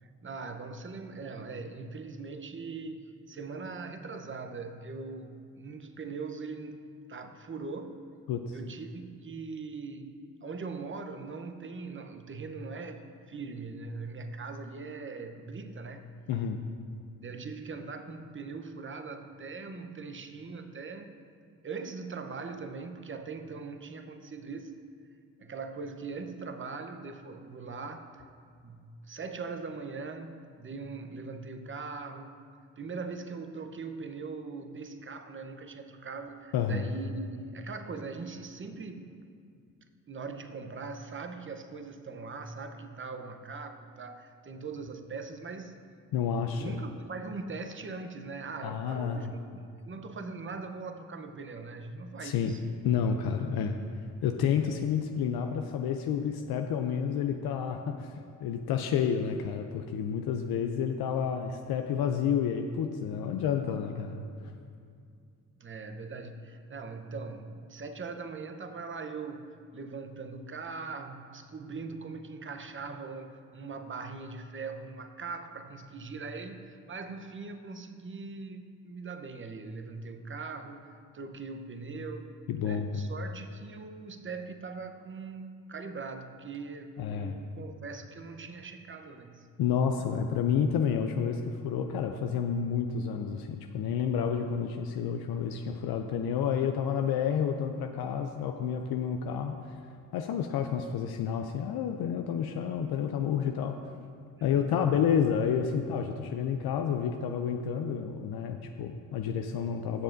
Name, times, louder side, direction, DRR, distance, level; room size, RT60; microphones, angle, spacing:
voice 1, 0.0-6.8 7.1-8.0 8.5-16.4 17.2-21.1 21.6-24.7 25.4-28.2 28.6-32.4 32.8-39.1 40.1-45.8 46.6-52.6 65.6-69.5 69.7-80.9 81.1-82.3 82.6-89.5 104.5-104.8, right 4 dB, 35° right, 7 dB, 0.8 m, -41 dB
voice 2, 8.3-8.6 16.3-16.6 36.5-36.9 46.1-46.8 48.6-49.3 52.2-52.6 52.8-53.8 54.2-58.1 58.4-64.2 82.5-83.1 87.0-87.4 89.6-99.8 100.1-103.9 104.4-110.0, left 7 dB, 85° left, 5 dB, 0.5 m, -30 dB
15.5 x 6.8 x 2.6 m, 2.3 s
cardioid pair, 60°, 36 cm